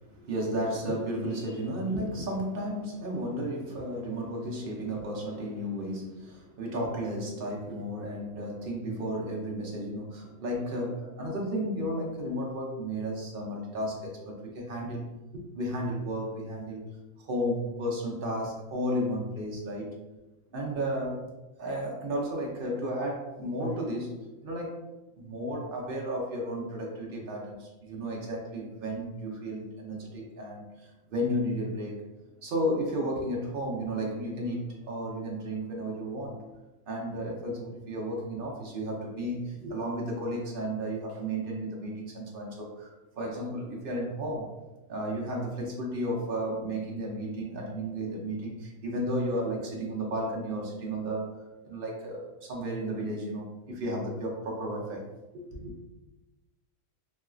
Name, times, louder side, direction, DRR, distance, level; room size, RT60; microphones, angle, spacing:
voice 1, 0.1-16.8 17.2-19.9 20.5-21.3 21.6-24.8 25.2-32.0 32.4-36.4 36.9-42.9 43.2-44.5 44.9-51.3 51.6-55.0 55.3-55.7, equal, 55° right, -2 dB, 0.6 m, -33 dB
3.1 x 2.8 x 2.4 m, 1.1 s
omnidirectional pair, 1.5 m